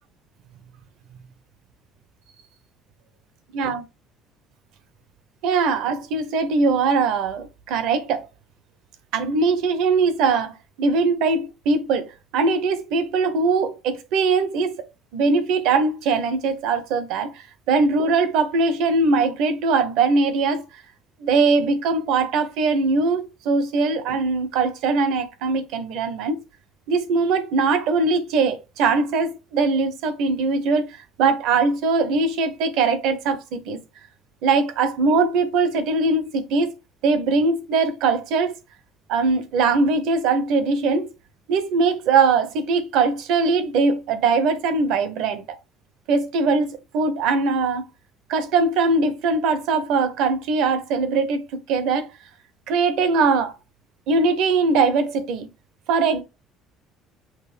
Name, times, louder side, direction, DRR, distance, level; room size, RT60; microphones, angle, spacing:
voice 1, 5.4-8.3 9.1-14.8 15.1-20.6 21.2-26.4 26.9-30.9 31.2-33.8 34.4-36.7 37.0-38.5 39.1-41.1 41.5-45.4 46.1-47.9 48.3-52.1 52.7-53.5 54.1-55.5 55.9-56.2, right 4 dB, 65° right, 0.9 m, -21 dB
5.9 x 2.6 x 3.4 m
hypercardioid pair, 55°, 0 cm